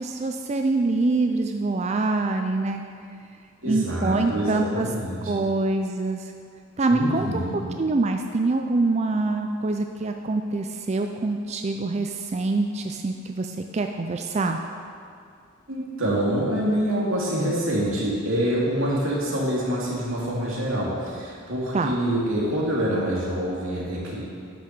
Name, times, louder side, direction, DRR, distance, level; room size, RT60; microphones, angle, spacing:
voice 1, 0.0-2.8 3.6-4.9 5.3-6.3 6.8-7.4 7.8-14.6 21.7-21.9, right 3 dB, 35° right, 4 dB, 0.4 m, -25 dB
voice 2, 3.6-5.4 6.9-7.6 15.7-24.2, equal, 90° right, -5 dB, 2.7 m, -26 dB
10.0 x 6.4 x 6.7 m, 2.3 s
head